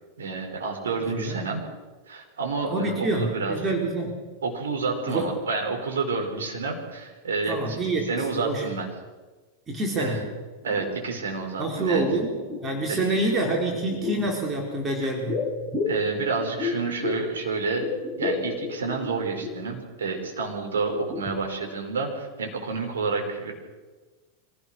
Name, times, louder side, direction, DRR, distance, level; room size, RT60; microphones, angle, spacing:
voice 1, 0.2-1.6 2.1-3.6 4.4-7.8 8.1-8.9 10.0-10.2 10.6-12.1 12.9-13.3 15.8-17.9 18.2-23.5, right 4 dB, 65° right, 2 dB, 4.8 m, -29 dB
voice 2, 0.9-1.4 2.7-4.1 5.1-5.3 7.5-8.7 9.7-10.2 11.6-15.5, right 2 dB, 20° right, 0 dB, 4.4 m, -27 dB
sound 1, 10.2-10.3 10.6-11.4 11.7-12.9 13.7-14.4 15.3-17.4 17.6-19.7 20.2-20.3 20.7-21.7 22.0-22.1, left 3 dB, 5° right, 6.8 m, -32 dB
25.0 x 16.5 x 6.4 m, 1.3 s
figure-of-eight pair, 90°, 0 cm